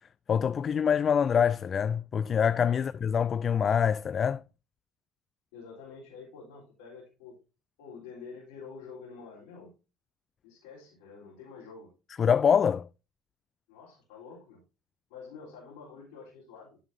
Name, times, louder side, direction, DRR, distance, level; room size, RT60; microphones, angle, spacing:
voice 1, 0.3-4.4 12.2-12.9, left 7 dB, 40° left, 0.3 m, -25 dB
voice 2, 2.7-3.1 5.5-7.4 7.8-9.7 10.4-11.9 13.7-14.6 15.1-16.8, left 5 dB, 80° left, 3.8 m, -48 dB
11.0 x 7.2 x 2.8 m
hypercardioid pair, 65°, 0 cm